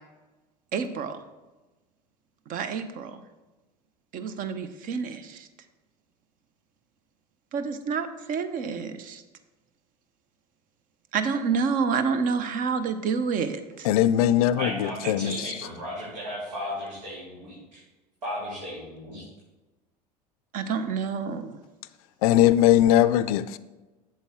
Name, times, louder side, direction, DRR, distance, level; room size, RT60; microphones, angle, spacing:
voice 1, 0.7-1.2 2.5-3.2 4.1-5.5 7.5-9.2 11.1-13.9 20.5-21.6, right 5 dB, 40° right, 0.8 m, -28 dB
voice 2, 13.8-15.4 22.2-23.6, left 12 dB, 60° left, 0.4 m, -20 dB
voice 3, 14.6-17.6 18.2-19.2, equal, 80° right, 2.5 m, -35 dB
8.1 x 7.5 x 3.7 m
figure-of-eight pair, 80°, 21 cm